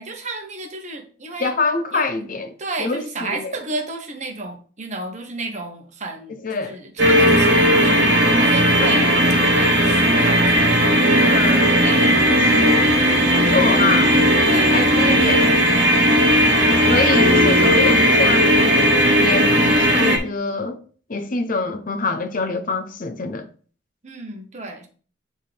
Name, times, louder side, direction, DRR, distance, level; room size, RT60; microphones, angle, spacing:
voice 1, 0.0-1.5 1.9-2.1 2.6-9.1 9.5-12.2 12.6-12.8 13.4-13.6 14.5-15.1 16.4-16.7 24.0-24.9, right 2 dB, 40° right, 1.2 m, -32 dB
voice 2, 1.4-3.5 6.3-6.8 8.8-9.1 11.2-11.7 12.4-12.8 13.3-14.1 14.7-15.5 16.9-20.8 21.1-23.5, left 3 dB, 45° left, 0.7 m, -25 dB
sound 1, 7.0-20.2, equal, 65° right, 1.7 m, -16 dB
8.8 x 3.7 x 3.4 m
head